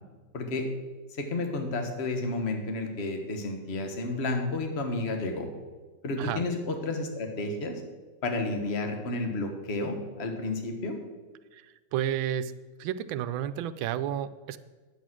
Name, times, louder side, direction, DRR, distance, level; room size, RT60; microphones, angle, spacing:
voice 1, 0.3-0.7 1.2-5.5 6.0-7.8 8.2-11.0, left 2 dB, 35° left, 4 dB, 1.5 m, -31 dB
voice 2, 11.5-12.5 12.8-14.6, right 10 dB, 85° right, 13 dB, 1.4 m, -31 dB
10.5 x 8.6 x 6.1 m, 1.4 s
omnidirectional pair, 2.1 m